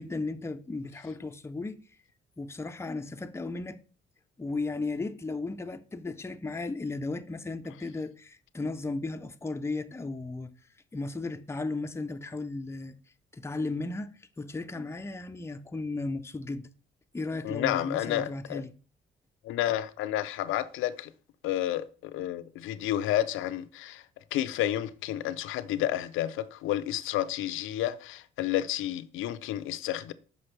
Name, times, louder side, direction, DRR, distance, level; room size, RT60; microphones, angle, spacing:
voice 1, 0.0-1.8 2.4-3.8 4.4-10.5 10.9-12.9 13.3-16.7 17.1-18.7, left 3 dB, 15° left, 0.5 m, -35 dB
voice 2, 17.4-18.6 19.4-21.1 21.4-24.0 24.3-30.1, left 13 dB, 85° left, 0.5 m, -30 dB
5.9 x 5.5 x 3.2 m
cardioid pair, 90°, 20 cm